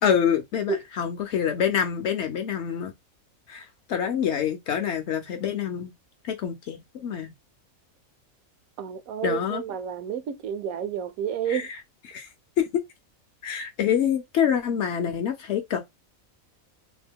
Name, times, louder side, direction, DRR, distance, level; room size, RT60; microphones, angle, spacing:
voice 1, 0.0-2.9 3.5-5.9 6.3-7.3 9.2-9.6 11.5-11.8 12.1-12.3 12.6-12.8 13.4-15.8, left 8 dB, 65° left, 0.7 m, -26 dB
voice 2, 8.8-11.7, right 8 dB, 80° right, 1.0 m, -30 dB
2.8 x 2.2 x 3.4 m
omnidirectional pair, 1.5 m